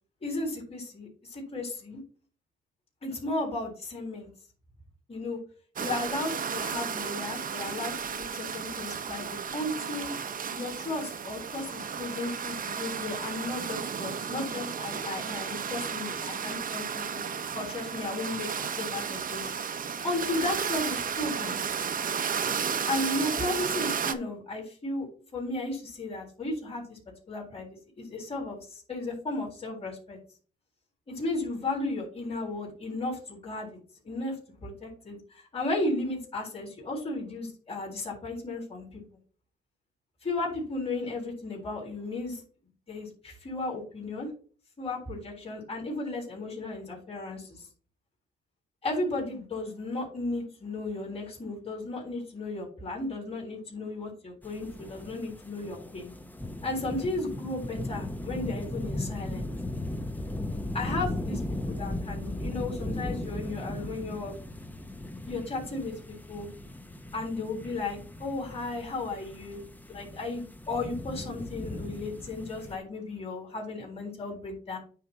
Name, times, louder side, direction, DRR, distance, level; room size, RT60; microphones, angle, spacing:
voice 1, 0.2-2.0 3.0-4.3 5.1-5.4 5.8-10.1 10.5-17.2 17.5-19.5 20.0-21.6 22.9-27.0 27.3-30.2 31.1-33.8 34.0-34.4 34.6-39.0 40.2-42.4 42.9-44.3 44.8-47.7 48.8-56.1 56.6-59.5 60.7-64.4 65.3-65.9 66.3-66.5 67.1-69.6 69.9-74.8, left 2 dB, 30° left, -3 dB, 3.7 m, -34 dB
sound 1, 5.8-24.1, right 7 dB, 45° right, 0.8 m, -33 dB
sound 2, 54.4-72.8, left 1 dB, 10° left, 0.8 m, -37 dB
9.3 x 3.4 x 5.6 m, 0.41 s
cardioid pair, 90°, 20 cm